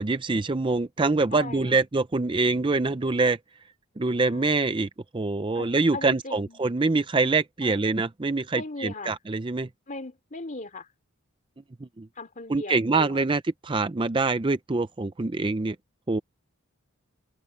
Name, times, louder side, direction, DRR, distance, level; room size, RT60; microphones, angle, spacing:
voice 1, 0.0-3.4 4.0-9.7 12.0-12.1 12.5-15.8 16.1-16.2, right 3 dB, 20° right, 0.5 m, -25 dB
voice 2, 1.3-1.8 4.2-4.7 5.5-6.7 7.6-7.8 8.5-9.2 9.9-10.9 12.2-13.3, left 2 dB, 35° left, 2.9 m, -39 dB
head